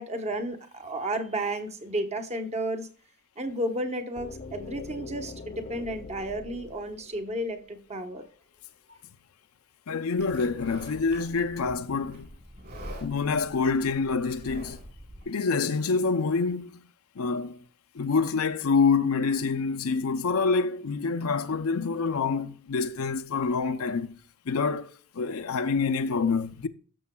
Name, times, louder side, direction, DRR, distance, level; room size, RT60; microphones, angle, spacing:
voice 1, 0.0-2.9 3.4-8.2 8.9-9.0, right 1 dB, 30° right, 1.1 m, -32 dB
sound 1, 4.2-8.1, left 3 dB, 35° left, 0.7 m, -43 dB
voice 2, 9.9-12.3 13.0-14.8 15.3-16.8 17.2-17.6 17.9-24.2 24.5-26.7, left 4 dB, 85° left, 0.6 m, -26 dB
Livestock farm animals working animals, 10.2-15.2, equal, 50° right, 4.2 m, -45 dB
13.0 x 6.9 x 2.3 m
head